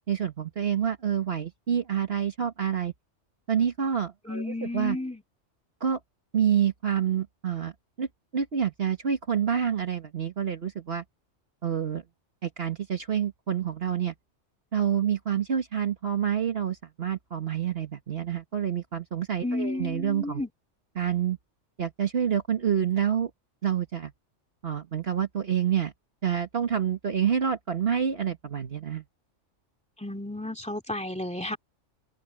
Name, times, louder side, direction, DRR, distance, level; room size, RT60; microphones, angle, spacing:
voice 1, 0.1-2.9 3.5-5.0 5.8-6.0 6.3-7.7 8.0-8.1 8.3-11.0 11.6-12.0 12.4-14.1 14.7-20.4 20.9-21.4 21.8-23.3 23.6-24.1 24.6-25.9 26.2-29.0, right 8 dB, 55° right, 1.6 m, -27 dB
voice 2, 4.3-5.2 19.4-20.5 30.0-31.6, left 1 dB, 5° left, 2.4 m, -32 dB
omnidirectional pair, 1.2 m